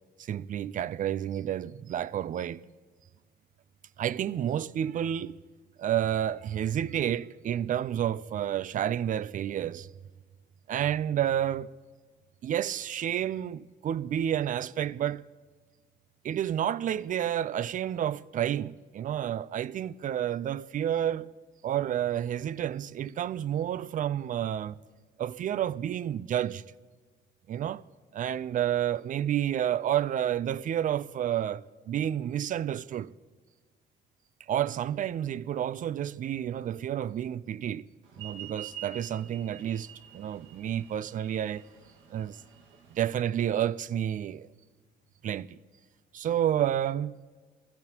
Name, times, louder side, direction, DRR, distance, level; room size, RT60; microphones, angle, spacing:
voice 1, 0.2-2.6 4.0-5.4 5.8-9.9 10.7-11.7 12.4-15.3 16.2-21.3 21.6-24.8 25.2-26.6 27.5-27.8 28.1-33.1 34.5-37.9 38.2-39.9 40.1-41.6 42.1-42.4 42.9-44.5 45.2-45.6 46.1-47.2, right 10 dB, 45° right, 0.4 m, -30 dB
sound 1, 38.1-43.1, right 10 dB, 90° right, 1.7 m, -46 dB
21.0 x 16.0 x 2.9 m
cardioid pair, 115°, 19 cm